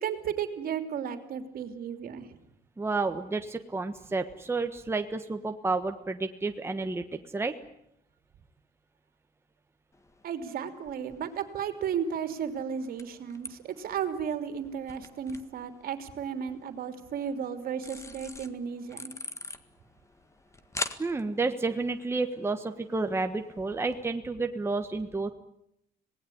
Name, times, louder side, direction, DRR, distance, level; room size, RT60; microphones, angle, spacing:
voice 1, 0.0-2.4 10.2-19.1, right 7 dB, 60° right, 8 dB, 3.1 m, -34 dB
voice 2, 2.8-7.5 21.0-25.3, right 3 dB, 15° right, 6 dB, 1.4 m, -30 dB
sound 1, 9.9-24.0, left 2 dB, 15° left, 1.7 m, -45 dB
26.0 x 19.0 x 9.9 m, 0.78 s
cardioid pair, 110°, 17 cm